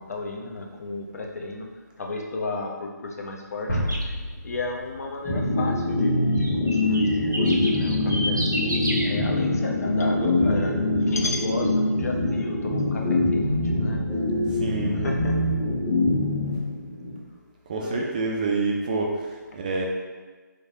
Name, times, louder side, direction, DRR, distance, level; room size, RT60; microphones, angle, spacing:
voice 1, 0.0-1.7 2.0-3.7 4.4-8.4 9.0-10.8 11.1-14.0 15.0-15.4 17.8-18.0, left 2 dB, 55° left, 0 dB, 0.6 m, -33 dB
sound 1, 3.7-6.5, equal, 80° left, 1.3 m, -32 dB
sound 2, 3.9-4.1 6.3-9.1, equal, 90° right, 0.6 m, -31 dB
sound 3, 5.2-17.1, left 2 dB, ahead, 0.7 m, -24 dB
voice 2, 14.6-15.1 17.7-19.1 19.5-19.9, right 3 dB, 25° right, 0 dB, 0.3 m, -27 dB
3.3 x 3.1 x 2.7 m, 1.3 s
figure-of-eight pair, 150°, 10 cm